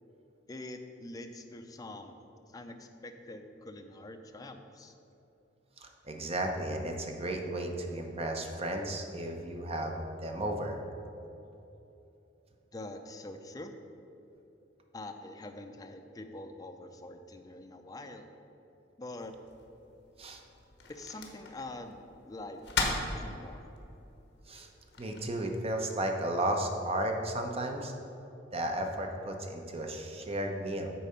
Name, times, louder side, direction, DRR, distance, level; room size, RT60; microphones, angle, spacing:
voice 1, 0.5-2.1 2.5-4.9 12.7-13.7 14.9-18.3 19.0-19.3 20.9-23.7, left 2 dB, 20° left, 5 dB, 0.5 m, -45 dB
voice 2, 5.8-10.8 20.2-20.4 24.5-24.7 25.0-27.9 28.5-30.9, right 1 dB, 35° right, 3 dB, 0.7 m, -34 dB
sound 1, 19.2-25.3, left 3 dB, 65° left, 1.0 m, -39 dB
8.5 x 4.1 x 5.6 m, 2.9 s
head